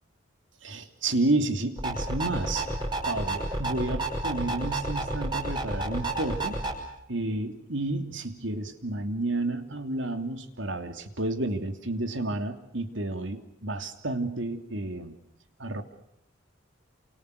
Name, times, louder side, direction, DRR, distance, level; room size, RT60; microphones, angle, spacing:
voice 1, 0.6-2.7 3.1-6.6 7.1-15.2 15.6-15.8, right 2 dB, 70° right, 8 dB, 2.9 m, -31 dB
sound 1, 1.8-6.7, right 2 dB, 25° right, 6.0 m, -30 dB
29.0 x 27.5 x 6.5 m, 0.78 s
head